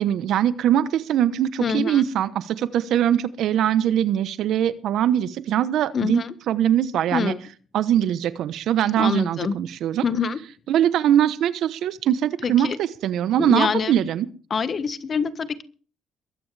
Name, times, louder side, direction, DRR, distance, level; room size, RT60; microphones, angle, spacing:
voice 1, 0.0-6.2 6.5-7.3 7.7-10.0 10.7-14.3, right 10 dB, 70° right, 14 dB, 1.0 m, -22 dB
voice 2, 1.6-2.0 5.9-6.3 7.1-7.5 9.0-9.5 10.0-10.4 12.4-12.8 13.4-14.0 14.5-15.6, left 6 dB, 45° left, 12 dB, 1.4 m, -25 dB
22.5 x 9.7 x 3.4 m, 0.40 s
supercardioid pair, 70°, 0 cm